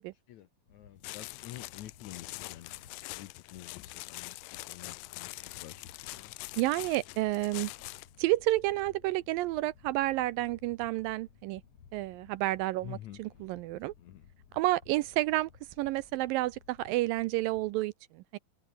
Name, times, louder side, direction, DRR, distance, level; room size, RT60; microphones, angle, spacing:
voice 1, 0.3-6.3 12.8-13.2 14.0-14.3, left 13 dB, 70° left, 1.8 m, -49 dB
sound 1, 0.7-17.8, left 7 dB, 45° left, 3.0 m, -58 dB
sound 2, 1.0-8.2, left 22 dB, 85° left, 1.9 m, -44 dB
voice 2, 6.6-7.7 8.2-11.6 11.9-13.9 14.5-15.5 15.8-18.4, right 18 dB, 80° right, 2.1 m, -30 dB
omnidirectional pair, 4.4 m